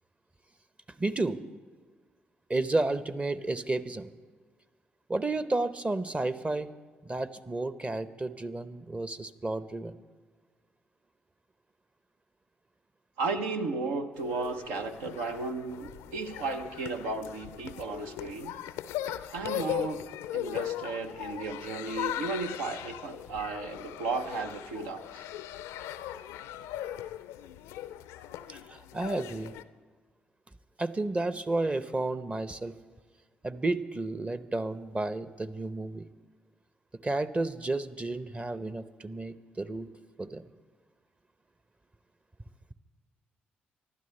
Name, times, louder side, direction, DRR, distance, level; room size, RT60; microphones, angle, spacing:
voice 1, 1.0-1.4 2.5-4.1 5.1-6.7 7.0-10.0 28.5-29.5 30.8-32.7 33.4-36.0 37.0-39.9 40.2-40.5, right 2 dB, 25° right, 13 dB, 0.8 m, -32 dB
voice 2, 13.2-18.5 19.3-20.1 20.3-25.2, right 3 dB, 85° right, 6 dB, 0.8 m, -34 dB
sound 1, 14.2-29.6, left 12 dB, 80° left, 0.4 m, -39 dB
25.0 x 12.0 x 3.3 m, 1.5 s
hypercardioid pair, 45°, 5 cm